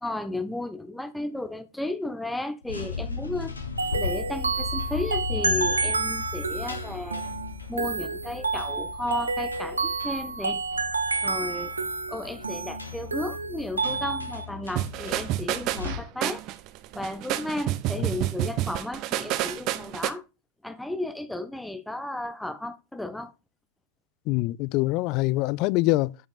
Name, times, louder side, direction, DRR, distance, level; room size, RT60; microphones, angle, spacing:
voice 1, 0.0-3.6 3.9-7.2 7.7-10.6 11.2-11.7 12.1-16.4 16.9-20.2 20.6-23.3, left 1 dB, 5° left, 0.8 m, -34 dB
sound 1, 2.6-15.9, left 5 dB, 80° left, 1.3 m, -37 dB
sound 2, 3.8-14.4, right 3 dB, 80° right, 0.9 m, -29 dB
sound 3, 14.8-20.1, right 15 dB, 40° right, 0.7 m, -29 dB
voice 2, 24.3-26.2, left 19 dB, 40° left, 0.3 m, -24 dB
9.4 x 5.3 x 4.0 m
figure-of-eight pair, 90°, 0 cm